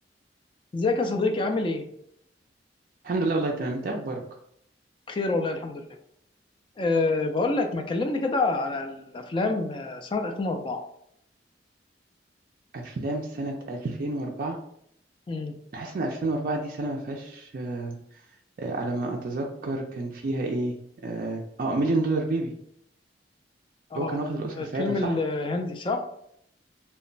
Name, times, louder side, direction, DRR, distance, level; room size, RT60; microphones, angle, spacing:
voice 1, 0.7-1.8 5.1-5.8 6.8-10.8 15.3-15.5 23.9-24.2 24.5-26.0, left 3 dB, 30° left, 5 dB, 0.3 m, -27 dB
voice 2, 3.0-4.2 12.7-14.6 15.7-18.0 18.6-20.7 21.0-22.5 24.0-25.1, right 2 dB, 50° right, 0 dB, 0.3 m, -29 dB
2.2 x 2.0 x 3.8 m, 0.71 s
head